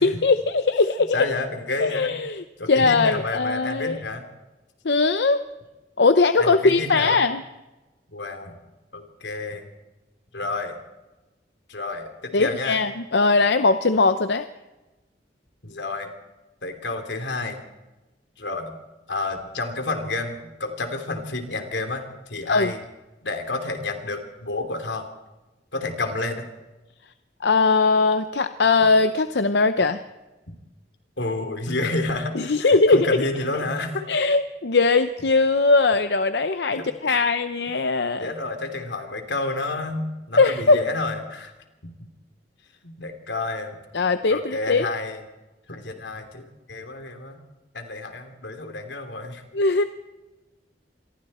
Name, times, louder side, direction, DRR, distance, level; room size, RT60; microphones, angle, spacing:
voice 1, 0.0-1.1 1.8-4.0 4.8-5.4 6.0-7.4 12.3-14.5 22.5-22.7 27.4-30.0 32.3-33.3 34.1-38.3 40.4-40.8 43.9-44.9 49.5-49.8, left 3 dB, 70° left, 10 dB, 0.8 m, -20 dB
voice 2, 1.1-2.2 2.6-4.2 6.4-7.2 8.1-8.5 8.9-9.7 10.3-10.8 11.7-12.8 15.6-16.1 16.6-17.6 18.4-18.8 19.1-22.8 23.2-25.1 25.7-26.5 30.5-30.6 31.2-34.1 36.7-37.2 38.2-41.5 41.8-41.9 42.8-43.7 44.3-45.2 45.7-47.4 47.7-49.4, left 2 dB, 90° left, 5 dB, 3.2 m, -30 dB
27.0 x 22.5 x 4.4 m, 1.1 s
head